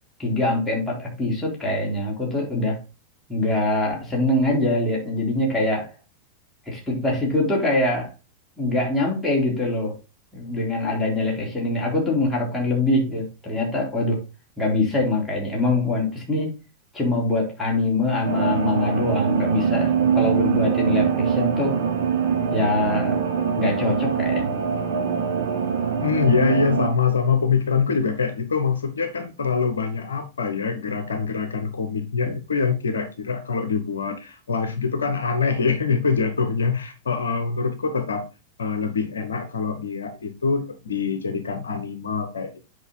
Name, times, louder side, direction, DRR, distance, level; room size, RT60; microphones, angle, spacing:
voice 1, 0.2-2.8 3.3-5.9 6.7-8.1 8.6-10.0 10.3-14.2 14.6-16.5 16.9-21.8 22.5-23.2 23.6-24.5, left 2 dB, 5° left, 4.0 m, -23 dB
sound 1, 18.2-26.9, right 7 dB, 55° right, 1.3 m, -23 dB
voice 2, 26.0-38.3 38.6-42.7, left 5 dB, 70° left, 0.9 m, -24 dB
8.1 x 5.3 x 4.0 m
figure-of-eight pair, 90°, 0 cm